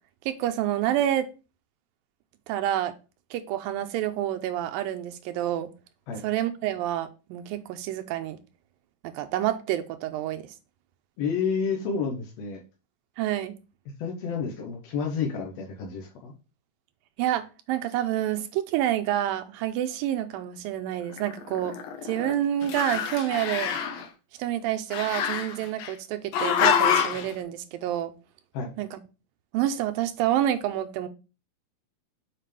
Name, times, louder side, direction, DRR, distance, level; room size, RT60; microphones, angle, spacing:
voice 1, 0.3-1.3 2.5-2.9 3.3-5.7 6.2-8.4 9.0-10.5 13.2-13.5 17.2-21.7 22.0-23.7 24.4-28.1 28.8-29.0 29.5-31.1, right 12 dB, 85° right, 2.4 m, -28 dB
voice 2, 11.2-12.6 14.0-16.3 28.5-28.7, left 5 dB, 65° left, 1.8 m, -30 dB
Growling, 21.1-22.3 22.6-24.1 24.9-25.9 26.3-27.3, left 8 dB, 85° left, 2.7 m, -26 dB
7.5 x 5.1 x 3.3 m
omnidirectional pair, 4.1 m